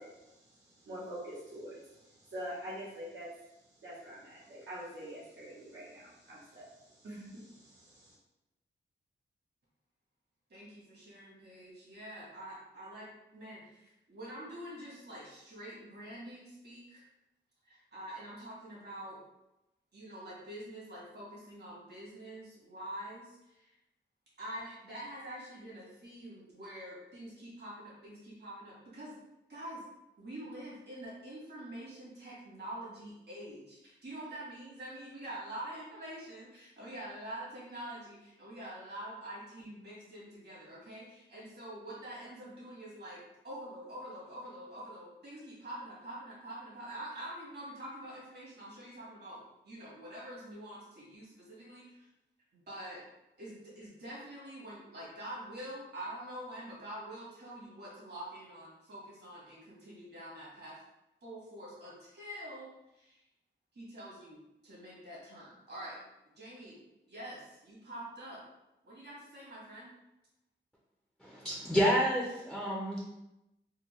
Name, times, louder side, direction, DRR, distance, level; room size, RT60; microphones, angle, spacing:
voice 1, 0.0-3.3 3.8-8.1, equal, 75° right, -7 dB, 0.9 m, -45 dB
voice 2, 10.5-17.1 17.6-19.2 19.9-23.7 24.4-29.1 29.5-29.8 30.2-52.1 52.5-53.0 53.4-60.8 61.2-63.2 63.7-66.0 66.4-66.8 67.1-68.4 68.8-69.9, right 1 dB, 55° right, -7 dB, 1.5 m, -46 dB
voice 3, 71.2-73.0, equal, ahead, -5 dB, 0.5 m, -29 dB
3.6 x 2.1 x 3.0 m, 0.91 s
wide cardioid pair, 130°, 20 cm